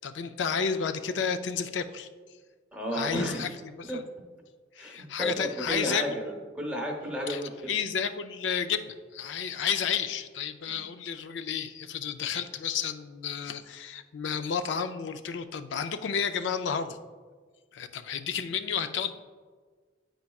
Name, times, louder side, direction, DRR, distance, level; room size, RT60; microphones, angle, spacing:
voice 1, 0.0-2.1 2.9-4.0 4.7-6.0 7.3-7.4 7.7-17.0 17.7-19.1, left 6 dB, 80° left, 10 dB, 0.4 m, -31 dB
voice 2, 2.7-3.5 3.9-4.0 4.8-7.7 10.7-10.8, equal, 5° right, -1 dB, 0.9 m, -33 dB
9.7 x 4.6 x 2.3 m, 1.5 s
head